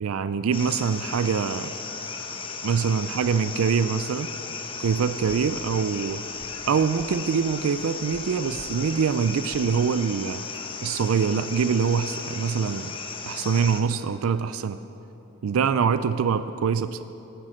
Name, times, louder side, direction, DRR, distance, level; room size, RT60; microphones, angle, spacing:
voice 1, 0.0-1.8 2.6-4.3 4.8-6.2 6.7-10.4 10.8-12.9 13.3-14.8 15.4-17.0, right 6 dB, 90° right, 13 dB, 0.4 m, -24 dB
sound 1, 0.5-13.8, left 5 dB, 25° left, 0.8 m, -36 dB
16.5 x 10.0 x 5.1 m, 3.0 s
head